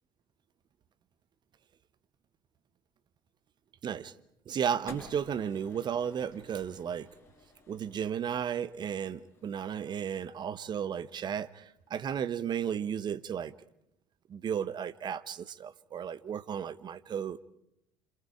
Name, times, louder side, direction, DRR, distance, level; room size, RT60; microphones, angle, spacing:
voice 1, 3.8-4.1 4.5-7.1 7.7-13.5 14.3-17.4, right 8 dB, 40° right, 1.2 m, -34 dB
sound 1, 4.9-11.2, left 2 dB, 20° left, 6.2 m, -54 dB
27.5 x 27.0 x 4.9 m
figure-of-eight pair, 60°, 12 cm